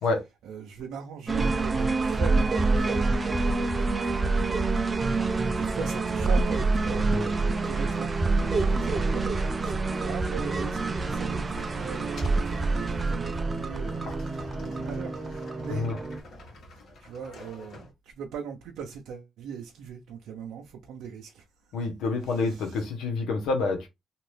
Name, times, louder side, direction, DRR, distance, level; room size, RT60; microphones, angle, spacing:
voice 1, 0.4-4.2 4.6-5.1 5.3-9.3 9.6-16.1 17.0-21.4 22.2-22.8, right 7 dB, 85° right, 0.5 m, -40 dB
sound 1, 1.3-16.2, right 3 dB, 30° right, 0.4 m, -26 dB
voice 2, 6.9-7.3 15.7-16.0 21.7-23.9, left 3 dB, 85° left, 1.0 m, -28 dB
sound 2, 11.0-17.9, left 1 dB, 60° left, 1.3 m, -47 dB
2.7 x 2.5 x 3.2 m
cardioid pair, 90°, 0 cm